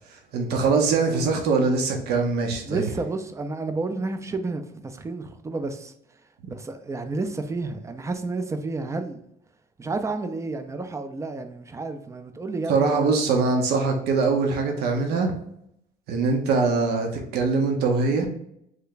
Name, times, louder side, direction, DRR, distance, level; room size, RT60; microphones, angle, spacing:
voice 1, 0.1-2.8 12.7-15.3 16.1-18.3, right 4 dB, 75° right, 0.8 m, -23 dB
voice 2, 2.7-5.9 6.5-9.2 9.8-13.1, right 3 dB, 15° right, 0.4 m, -31 dB
3.3 x 2.2 x 3.8 m
cardioid pair, 110°, 17 cm